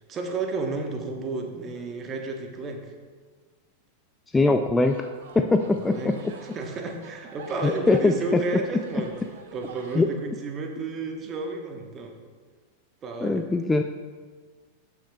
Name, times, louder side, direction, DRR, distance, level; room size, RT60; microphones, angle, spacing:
voice 1, 0.1-2.9 5.6-6.2 6.5-9.2 9.5-12.1 13.0-13.4, right 3 dB, 25° right, 3 dB, 1.0 m, -32 dB
voice 2, 4.3-5.1 5.4-6.1 7.6-8.4 10.0-10.1 13.2-13.8, left 3 dB, 10° left, 6 dB, 0.3 m, -21 dB
sound 1, 4.8-10.0, right 5 dB, 55° right, 0.8 m, -47 dB
13.0 x 6.0 x 2.3 m, 1.5 s
figure-of-eight pair, 90°, 0 cm